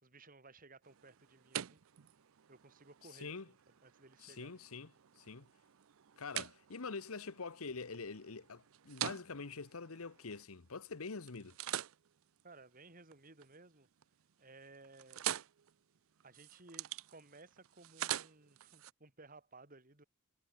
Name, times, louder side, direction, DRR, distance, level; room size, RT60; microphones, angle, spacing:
voice 1, 0.0-1.8 2.5-3.6 3.8-4.6 12.4-13.9 14.4-15.3 16.2-20.0, right 3 dB, 40° right, 3.5 m, -58 dB
sound 1, 0.8-10.8 11.3-13.5 13.9-14.3 14.6-18.9, right 12 dB, 75° right, 0.5 m, -46 dB
voice 2, 4.2-4.9 5.2-5.5 6.2-11.6, left 4 dB, 90° left, 1.1 m, -45 dB
head